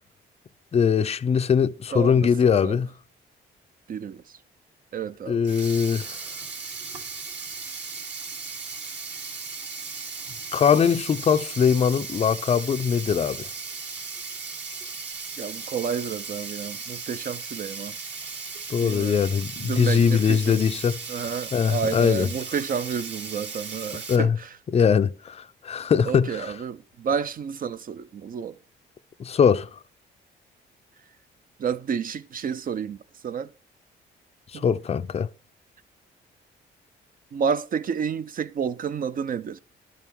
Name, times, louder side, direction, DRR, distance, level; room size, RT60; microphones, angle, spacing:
voice 1, 0.7-2.9 5.3-6.2 10.5-13.5 18.7-22.3 24.1-24.4 24.7-26.6 29.2-29.7 34.5-35.3, left 7 dB, 30° left, 0.5 m, -22 dB
voice 2, 1.9-2.8 3.9-4.2 4.9-5.4 15.4-17.9 18.8-19.2 19.6-20.6 21.1-24.5 26.0-28.6 31.6-33.5 34.5-34.6 37.3-39.6, right 7 dB, 45° right, 0.5 m, -30 dB
Sink (filling or washing), 5.4-24.2, right 4 dB, 60° right, 2.2 m, -36 dB
11.5 x 5.5 x 4.7 m
cardioid pair, 90°, 20 cm